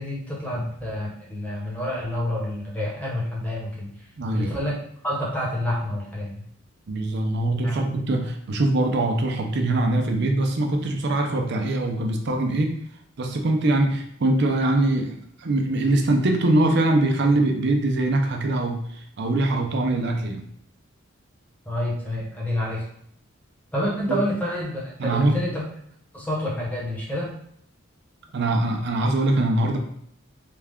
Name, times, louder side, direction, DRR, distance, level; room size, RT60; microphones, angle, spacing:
voice 1, 0.0-3.9 4.3-4.8 5.0-6.4 7.6-7.8 21.7-22.8 23.7-25.6 26.1-27.3, left 1 dB, 5° left, -5 dB, 1.0 m, -28 dB
voice 2, 4.2-4.6 6.9-12.8 13.2-18.8 19.2-20.5 24.1-24.2 25.0-25.4 28.3-29.8, right 2 dB, 60° right, 3 dB, 0.5 m, -22 dB
3.3 x 2.3 x 3.5 m, 0.68 s
head